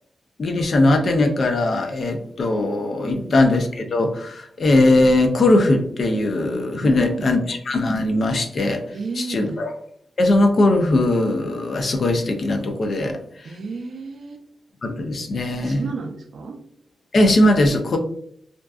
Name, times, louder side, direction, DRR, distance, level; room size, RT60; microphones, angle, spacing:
voice 1, 0.4-8.8 9.2-9.7 10.2-13.2 14.8-15.8 17.1-18.0, left 2 dB, 50° left, 5 dB, 0.4 m, -19 dB
voice 2, 3.0-3.4 6.8-7.4 8.9-9.6 13.4-14.4 15.6-16.6, right 4 dB, 60° right, 4 dB, 0.4 m, -31 dB
2.5 x 2.3 x 2.3 m, 0.66 s
wide cardioid pair, 130°, 0 cm